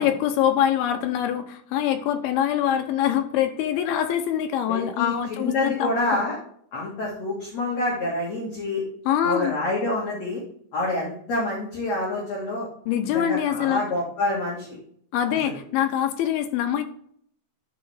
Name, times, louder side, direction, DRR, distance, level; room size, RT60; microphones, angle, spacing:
voice 1, 0.0-6.2 9.1-9.5 12.9-13.8 15.1-16.8, left 10 dB, 80° left, 7 dB, 2.3 m, -24 dB
voice 2, 4.7-6.4 6.7-8.8 9.2-10.4 10.7-12.7 13.1-14.8 15.4-15.6, left 2 dB, 50° left, -5 dB, 2.5 m, -27 dB
11.5 x 4.2 x 3.4 m, 0.63 s
omnidirectional pair, 4.8 m